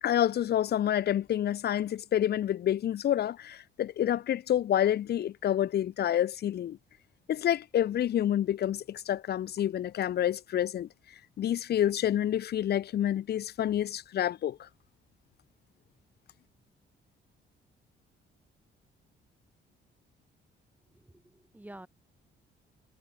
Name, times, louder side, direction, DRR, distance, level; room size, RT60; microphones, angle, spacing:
voice 1, 0.0-6.8 7.3-10.9 11.4-14.7, left 11 dB, 55° left, 0.6 m, -28 dB
voice 2, 20.9-21.9, right 1 dB, 10° right, 2.6 m, -49 dB
cardioid pair, 90°, 20 cm